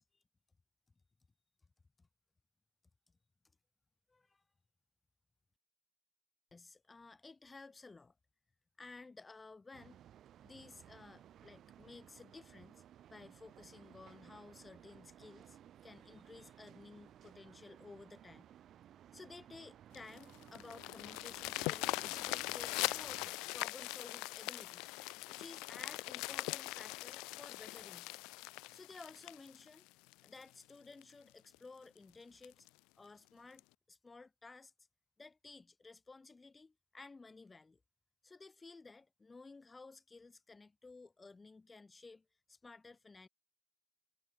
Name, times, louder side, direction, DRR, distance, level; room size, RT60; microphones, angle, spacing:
voice 1, 4.1-4.4 6.5-8.1 8.8-10.0 10.4-12.8 13.1-15.6 15.8-18.5 19.1-24.9 25.3-28.2 28.7-29.9 30.2-32.7 33.0-34.7 35.2-37.8 38.2-43.3, left 3 dB, 25° left, 4.3 m, -55 dB
sound 1, 9.7-23.3, right 10 dB, 55° right, 7.9 m, -59 dB
sound 2, 19.9-30.4 31.0-31.1 31.5-31.6 32.0-32.1 32.4-32.7 33.6-33.7, left 24 dB, 70° left, 2.7 m, -41 dB
hypercardioid pair, 55°, 0 cm